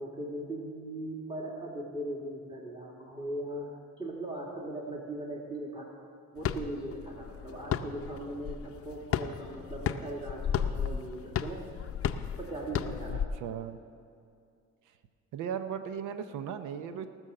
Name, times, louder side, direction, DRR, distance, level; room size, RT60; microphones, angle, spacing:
voice 1, 0.0-3.7 4.0-5.9 6.3-11.6 12.4-13.2, right 1 dB, 15° right, -2 dB, 1.8 m, -39 dB
sound 1, 6.4-13.3, left 8 dB, 50° left, 0.6 m, -34 dB
voice 2, 13.3-13.8 15.3-17.1, right 8 dB, 85° right, 10 dB, 0.7 m, -36 dB
18.5 x 6.3 x 6.6 m, 2.4 s
cardioid pair, 90°, 30 cm